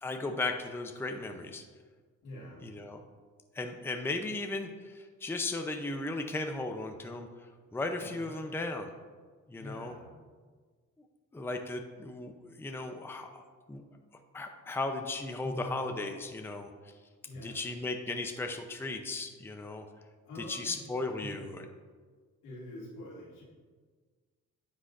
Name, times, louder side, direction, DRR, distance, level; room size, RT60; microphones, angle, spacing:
voice 1, 0.0-1.6 2.6-3.0 3.5-8.9 9.5-9.9 11.3-13.8 14.3-16.7 17.4-19.8 20.5-21.6, left 2 dB, 10° left, 5 dB, 0.6 m, -36 dB
voice 2, 2.2-2.6 8.0-8.3 9.6-10.2 15.4-15.8 17.3-17.7 20.2-20.9 21.2-21.4 22.4-23.4, left 1 dB, 85° left, -4 dB, 2.2 m, -44 dB
9.5 x 6.2 x 2.5 m, 1.5 s
cardioid pair, 90°, 30 cm